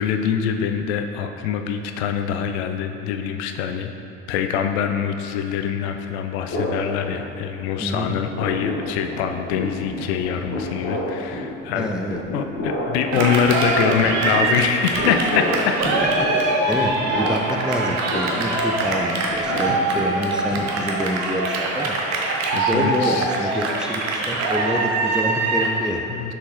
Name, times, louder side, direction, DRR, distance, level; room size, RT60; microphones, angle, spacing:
voice 1, 0.0-3.9 4.3-15.8 19.7-19.8 22.5-23.3 26.1-26.3, left 8 dB, 60° left, 6 dB, 0.5 m, -24 dB
sound 1, 6.5-7.7 8.0-21.2, left 1 dB, 40° left, 1.4 m, -30 dB
voice 2, 7.8-8.1 11.7-12.2 16.2-22.0 22.5-26.0, equal, ahead, 0 dB, 0.4 m, -27 dB
Cheering, 13.1-25.8, right 2 dB, 45° right, 0.9 m, -23 dB
6.5 x 5.4 x 3.1 m, 2.9 s
figure-of-eight pair, 55°, 37 cm